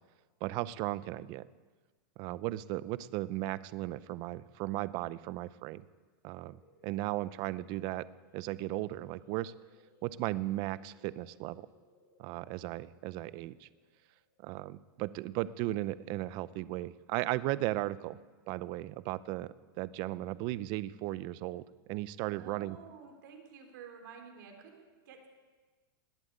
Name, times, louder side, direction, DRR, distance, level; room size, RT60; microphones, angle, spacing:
voice 1, 0.4-1.5 2.2-5.8 6.2-8.1 8.3-9.5 10.0-11.7 12.2-13.7 14.4-18.2 18.5-21.6 21.9-22.8, right 16 dB, 40° right, 17 dB, 0.5 m, -36 dB
sound 1, 6.5-15.8, left 2 dB, 55° left, 5.2 m, -67 dB
voice 2, 22.4-25.3, right 6 dB, 70° right, 3 dB, 3.4 m, -51 dB
19.5 x 7.8 x 8.7 m, 1.3 s
supercardioid pair, 150°, 11 cm